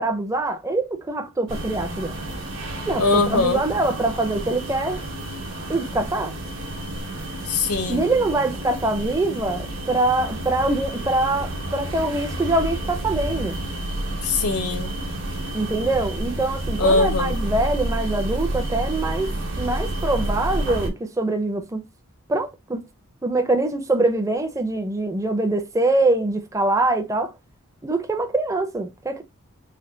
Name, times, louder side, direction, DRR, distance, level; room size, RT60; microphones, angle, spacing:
voice 1, 0.0-2.2 2.9-5.0 5.7-6.3 7.9-13.6 15.5-19.3 19.6-21.8 22.3-22.8 23.2-27.3 27.8-29.2, right 2 dB, 15° right, 0.5 m, -24 dB
sound 1, 1.5-20.9, right 1 dB, 60° right, 0.9 m, -30 dB
voice 2, 3.0-3.6 7.5-8.1 14.2-14.9 16.8-17.4, left 3 dB, 85° left, 0.9 m, -21 dB
3.3 x 2.2 x 3.7 m
head